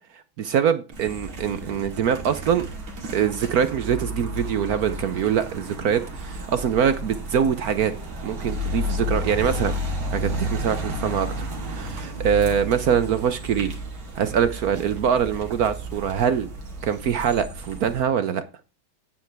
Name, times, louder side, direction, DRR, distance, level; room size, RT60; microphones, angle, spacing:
voice 1, 0.4-2.6 3.1-7.9 8.2-9.8 10.1-11.3 11.6-13.7 14.2-16.5 16.8-18.4, right 8 dB, 65° right, 1.0 m, -23 dB
sound 1, 0.9-18.0, equal, 80° right, 3.0 m, -32 dB
9.5 x 8.9 x 3.4 m
omnidirectional pair, 2.2 m